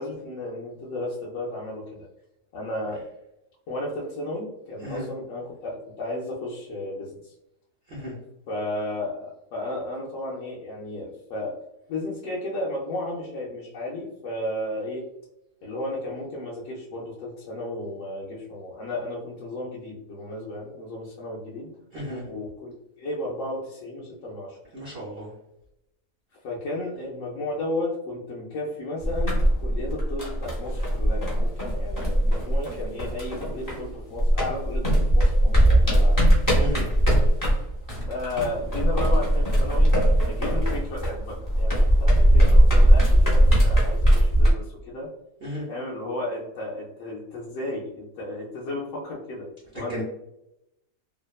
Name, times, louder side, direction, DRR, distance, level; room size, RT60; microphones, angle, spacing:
voice 1, 0.0-2.1 2.5-3.0 3.7-7.3 8.5-11.6 11.9-15.1 15.6-21.7 22.3-24.6 26.4-36.2 38.0-40.0 40.2-45.1 45.7-49.5 49.7-50.0, left 1 dB, 75° left, -5 dB, 0.7 m, -33 dB
voice 2, 21.9-22.2 24.7-25.3 36.6-36.9 45.4-45.6 49.7-50.0, equal, 75° right, -5 dB, 0.5 m, -34 dB
sound 1, 29.0-33.9 34.2-44.5, right 1 dB, 30° left, 0.3 m, -20 dB
2.8 x 2.0 x 2.2 m, 0.85 s
omnidirectional pair, 1.8 m